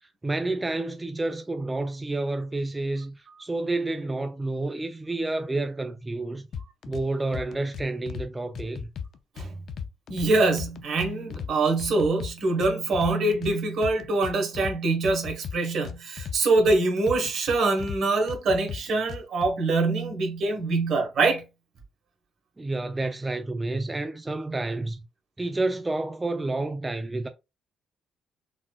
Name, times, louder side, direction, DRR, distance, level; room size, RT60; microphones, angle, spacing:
voice 1, 0.2-6.4 6.9-8.9 22.6-25.0 25.4-27.3, right 2 dB, 20° right, 0.4 m, -29 dB
sound 1, 6.5-7.0 7.3-8.3 8.5-10.3 10.6-11.5 11.8-13.5 13.8-14.7 15.0-16.8 17.1-18.0 18.3-19.5, left 7 dB, 65° left, 0.4 m, -36 dB
voice 2, 10.1-21.4, right 3 dB, 65° right, 1.1 m, -24 dB
4.0 x 2.3 x 2.3 m
cardioid pair, 90°, 0 cm